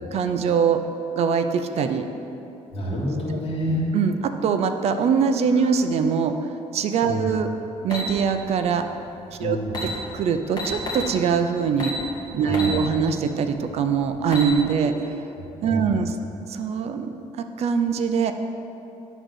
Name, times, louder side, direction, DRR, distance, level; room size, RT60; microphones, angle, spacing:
voice 1, 0.1-0.8 1.2-2.1 3.9-6.3 6.7-7.5 7.8-8.9 9.4-9.6 10.1-11.9 12.3-14.9 15.6-16.1 16.5-18.3, right 6 dB, 60° right, 7 dB, 0.5 m, -22 dB
voice 2, 2.7-3.8 5.5-5.7 7.0-7.3 9.4-9.8 12.4-13.0 15.4-16.0, equal, 55° left, -5 dB, 2.1 m, -28 dB
sound 1, 7.9-8.1 9.3-9.4 9.7-9.9 10.6-11.1 11.8-12.0 12.5-12.8 13.2-13.3 14.1-14.5, left 2 dB, 35° left, 1.6 m, -29 dB
9.9 x 3.9 x 6.3 m, 2.8 s
cardioid pair, 130°, 12 cm